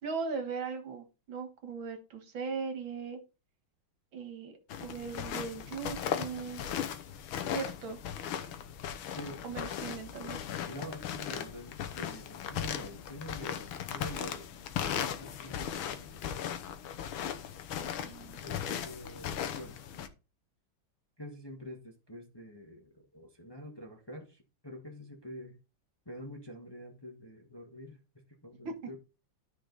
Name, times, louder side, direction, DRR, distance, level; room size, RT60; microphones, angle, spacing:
voice 1, 0.0-3.2 4.1-6.6 7.5-8.0 9.4-10.4 17.7-18.4 28.7-28.8, right 5 dB, 70° right, 2.3 m, -39 dB
sound 1, 4.7-20.1, left 9 dB, 85° left, 1.7 m, -37 dB
voice 2, 10.7-14.5 14.9-16.2 18.4-19.8 21.2-25.6 26.0-28.0 28.4-29.0, left 1 dB, 15° left, 1.3 m, -46 dB
13.0 x 5.0 x 3.9 m
omnidirectional pair, 2.2 m